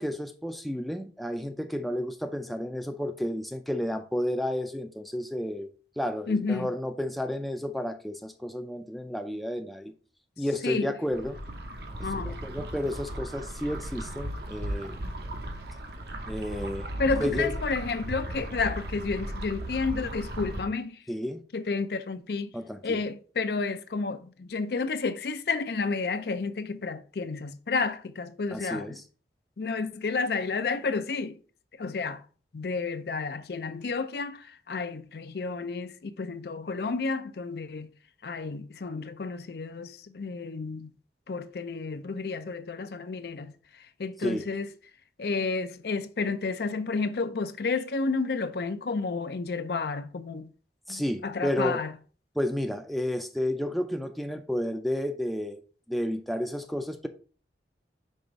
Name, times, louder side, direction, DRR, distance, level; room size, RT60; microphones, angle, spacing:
voice 1, 0.0-5.7 6.0-9.9 10.4-11.4 12.1-15.0 16.3-16.9 17.2-17.5 21.1-21.4 22.5-23.0 28.5-29.0 44.2-44.4 50.9-51.8 52.4-55.6 55.9-57.1, left 1 dB, ahead, 0.4 m, -31 dB
voice 2, 6.3-6.7 10.6-10.9 12.0-12.4 17.0-21.0 21.5-22.5 22.8-29.0 29.6-31.4 31.8-32.2 32.5-37.9 38.2-40.9 41.3-43.5 44.0-44.7 45.2-50.5 50.9-51.9, left 4 dB, 60° left, 0.5 m, -31 dB
sound 1, 11.1-20.6, right 1 dB, 60° right, 0.9 m, -36 dB
5.5 x 3.4 x 5.0 m
head